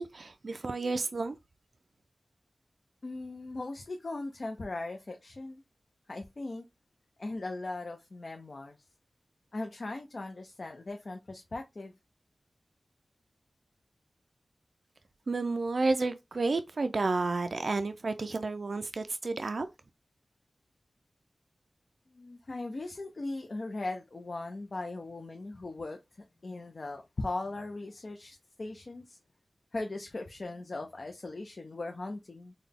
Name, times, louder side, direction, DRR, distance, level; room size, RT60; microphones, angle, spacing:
voice 1, 0.0-1.4 15.3-19.7, right 3 dB, 65° right, 0.3 m, -31 dB
voice 2, 3.0-5.6 6.1-6.6 7.2-8.8 9.5-11.9 22.1-29.2 29.7-32.5, left 2 dB, 55° left, 0.5 m, -39 dB
3.9 x 2.2 x 3.4 m
cardioid pair, 55°, 0 cm